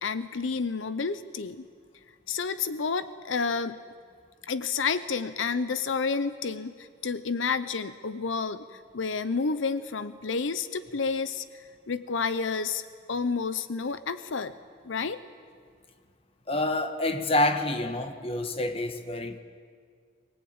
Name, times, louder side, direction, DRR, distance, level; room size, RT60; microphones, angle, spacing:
voice 1, 0.0-1.7 2.3-3.8 4.4-12.8 13.1-14.5 14.8-15.2, left 5 dB, 80° left, 0.7 m, -30 dB
voice 2, 16.5-19.4, left 1 dB, 30° left, 1.2 m, -27 dB
23.0 x 17.5 x 8.7 m
head